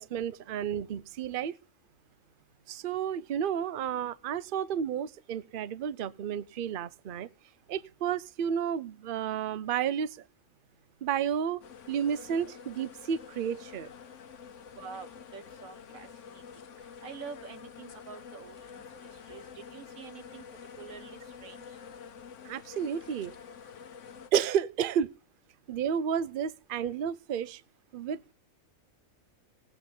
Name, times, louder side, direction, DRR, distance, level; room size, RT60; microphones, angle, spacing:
voice 1, 0.0-1.6 2.7-7.3 7.7-10.2 11.0-13.9 22.4-23.3 24.3-25.1 25.7-27.6 27.9-28.3, right 8 dB, 50° right, 0.7 m, -31 dB
sound 1, 11.6-24.3, left 7 dB, 65° left, 1.2 m, -48 dB
voice 2, 14.8-16.4 17.0-20.4 20.8-21.6, right 6 dB, 85° right, 1.5 m, -47 dB
19.5 x 8.0 x 3.9 m
omnidirectional pair, 1.4 m